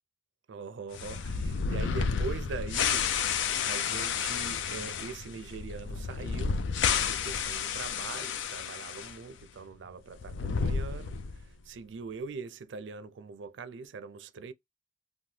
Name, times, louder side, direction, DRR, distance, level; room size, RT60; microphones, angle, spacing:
voice 1, 0.5-3.1 3.6-6.7 7.1-14.5, right 4 dB, 75° right, 0.4 m, -42 dB
sound 1, 0.9-9.1 9.4-9.5 10.1-11.5, left 6 dB, 80° left, 0.4 m, -31 dB
2.8 x 2.1 x 3.1 m
head